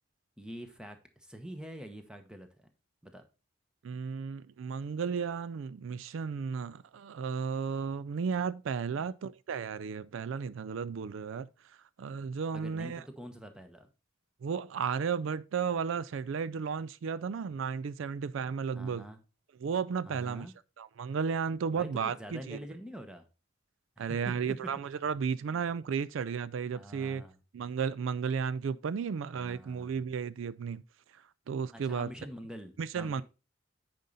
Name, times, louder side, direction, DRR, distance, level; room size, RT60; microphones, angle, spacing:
voice 1, 0.4-2.5 3.0-3.2 12.5-13.9 18.7-19.2 20.1-20.5 21.7-23.2 24.0-24.1 25.5-25.6 26.7-27.3 29.3-30.0 31.7-33.2, equal, 5° right, 1.0 m, -46 dB
voice 2, 3.8-13.0 14.4-19.1 19.6-20.5 20.8-22.6 24.0-27.2 27.5-30.8 31.1-32.1 32.8-33.2, right 6 dB, 80° right, 0.4 m, -34 dB
9.2 x 5.3 x 4.0 m
head